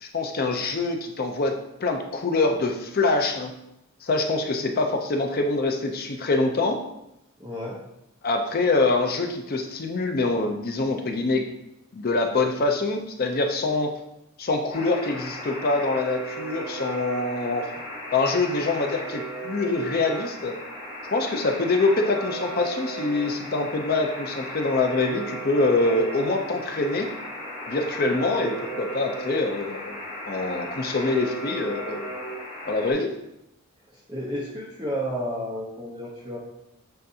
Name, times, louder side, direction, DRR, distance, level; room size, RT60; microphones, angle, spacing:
voice 1, 0.0-3.5 4.0-6.8 8.2-11.5 11.9-13.9 14.4-17.6 18.1-20.5 21.1-27.1 27.7-29.9 30.3-32.1 32.6-33.1, left 3 dB, 45° left, 4 dB, 0.5 m, -25 dB
voice 2, 7.4-7.8 33.9-36.4, equal, 20° right, -7 dB, 0.7 m, -32 dB
Alarm, 14.7-32.9, equal, 20° left, 1.2 m, -36 dB
7.7 x 2.6 x 2.7 m, 0.85 s
head